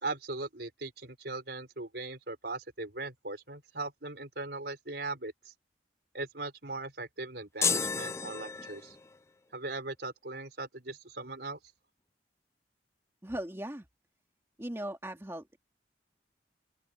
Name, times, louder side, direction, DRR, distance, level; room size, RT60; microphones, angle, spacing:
voice 1, 0.0-5.5 6.1-9.0 9.5-11.6, right 3 dB, 65° right, 4.8 m, -39 dB
sound 1, 7.6-9.2, left 5 dB, 15° left, 0.4 m, -32 dB
voice 2, 13.2-13.9 14.6-15.6, right 1 dB, 15° right, 2.1 m, -38 dB
open air
head